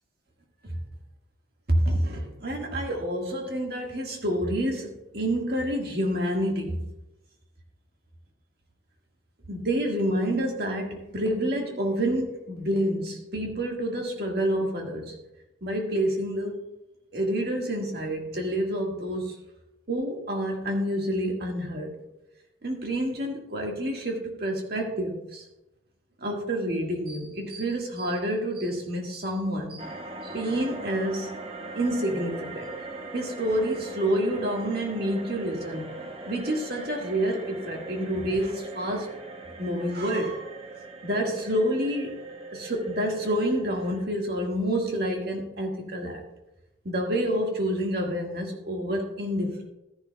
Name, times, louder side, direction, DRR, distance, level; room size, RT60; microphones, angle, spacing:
voice 1, 1.7-6.9 9.5-15.2 15.6-16.7 17.1-19.4 19.9-22.0 22.6-25.5 26.2-29.9 30.2-31.3 31.7-32.7 33.1-36.0 36.3-39.1 39.6-40.4 41.0-42.1 42.5-46.2 46.8-49.6, right 1 dB, 55° right, 1 dB, 1.8 m, -28 dB
sound 1, 29.8-44.0, right 2 dB, 30° right, 0.9 m, -41 dB
14.0 x 10.5 x 2.3 m, 0.93 s
head